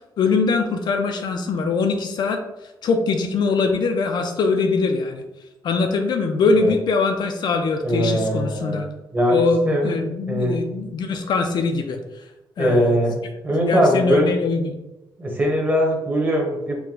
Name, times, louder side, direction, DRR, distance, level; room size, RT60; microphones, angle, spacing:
voice 1, 0.2-2.4 2.8-5.2 5.6-8.9 9.3-12.0 12.6-13.0 13.5-14.7, left 4 dB, 55° left, 5 dB, 0.4 m, -22 dB
voice 2, 7.8-8.8 9.1-10.0 10.3-10.6 12.6-13.2 13.4-14.3 15.2-16.7, equal, 20° right, 0 dB, 1.0 m, -21 dB
4.6 x 2.1 x 3.8 m, 0.96 s
cardioid pair, 140°, 9 cm